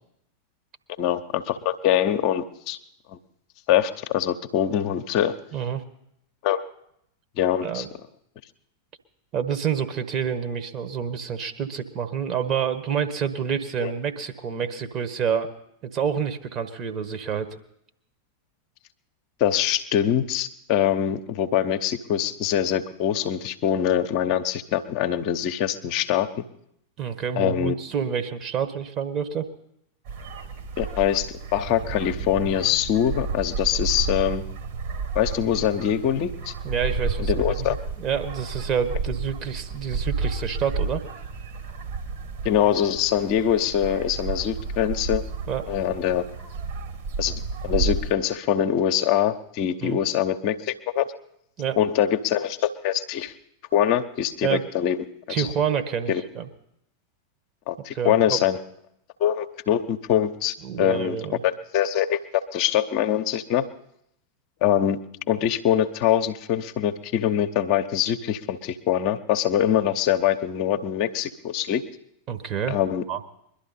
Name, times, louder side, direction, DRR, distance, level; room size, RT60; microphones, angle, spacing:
voice 1, 1.0-2.8 3.1-3.2 3.7-5.3 6.4-6.6 7.4-7.9 13.8-13.9 19.4-26.4 27.4-27.7 30.8-34.4 35.1-36.5 37.2-37.8 42.4-45.2 45.7-46.2 47.2-51.1 51.8-53.3 53.7-55.0 55.4-55.5 56.1-56.2 57.7-58.6 59.2-61.2 61.4-63.7 64.6-65.0 65.3-71.8 72.7-73.0, left 10 dB, 45° left, 7 dB, 0.8 m, -23 dB
voice 2, 5.5-5.8 7.6-7.9 9.3-15.5 15.8-17.5 27.0-29.5 36.6-41.0 45.5-45.6 49.8-50.0 51.6-51.8 54.4-54.6 55.3-56.5 57.9-58.4 60.6-61.4 72.3-72.8 73.1-73.2, right 7 dB, 35° right, 8 dB, 1.4 m, -28 dB
sound 1, 30.0-48.1, right 4 dB, 50° right, 2.1 m, -31 dB
22.0 x 12.0 x 4.2 m, 0.76 s
figure-of-eight pair, 90°, 0 cm